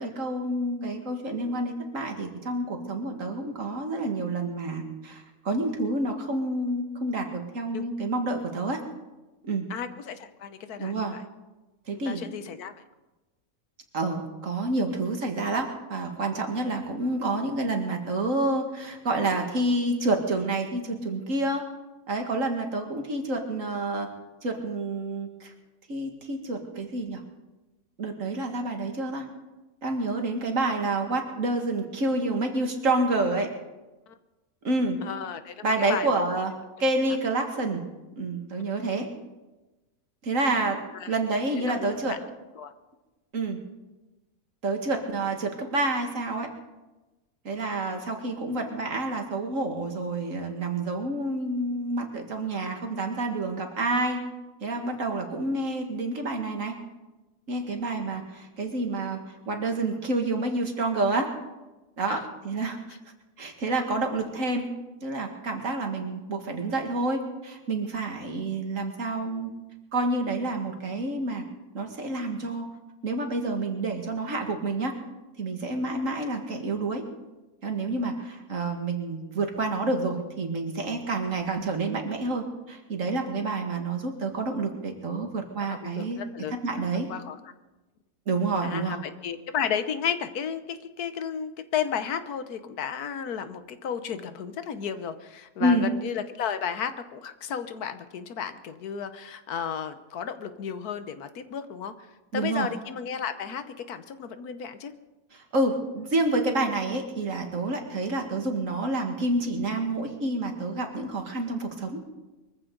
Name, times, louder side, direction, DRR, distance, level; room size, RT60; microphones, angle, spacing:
voice 1, 0.0-8.8 9.4-9.7 10.8-11.2 11.9-12.2 13.9-21.6 22.1-24.1 24.4-25.5 25.9-27.2 28.0-29.3 29.8-33.5 34.6-35.0 35.6-36.5 36.8-37.9 38.2-39.1 40.2-42.1 43.3-43.6 44.6-46.5 47.4-54.2 54.6-56.8 57.5-61.3 62.0-62.8 63.4-64.7 65.0-69.5 69.9-71.4 71.7-72.7 73.0-74.9 75.4-77.0 77.6-86.2 86.5-87.1 88.3-89.0 95.6-95.9 102.3-102.7 105.3-112.0, right 2 dB, 60° right, 4 dB, 2.2 m, -28 dB
voice 2, 9.7-11.2 11.9-12.7 34.1-34.2 35.0-36.1 40.9-41.1 41.6-42.2 42.6-42.7 62.1-62.3 85.7-86.6 87.1-87.4 88.6-102.1 102.3-104.9, left 7 dB, 85° left, 11 dB, 1.5 m, -33 dB
22.5 x 15.0 x 3.9 m, 1.1 s
omnidirectional pair, 1.6 m